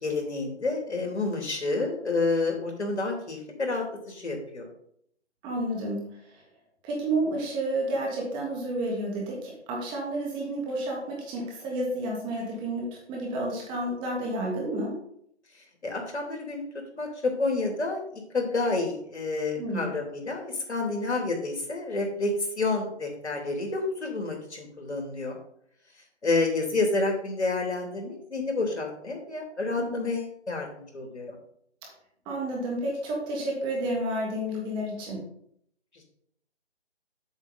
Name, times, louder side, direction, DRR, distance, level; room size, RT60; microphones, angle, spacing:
voice 1, 0.0-4.7 15.8-16.6 16.9-25.4 26.2-31.4, left 3 dB, 75° left, 1 dB, 3.0 m, -29 dB
voice 2, 5.4-6.4 6.8-15.0 19.6-19.9 29.8-30.1 31.8-31.9 32.2-35.2, right 1 dB, 15° right, -2 dB, 1.6 m, -31 dB
7.9 x 7.4 x 4.0 m, 0.69 s
figure-of-eight pair, 150°, 34 cm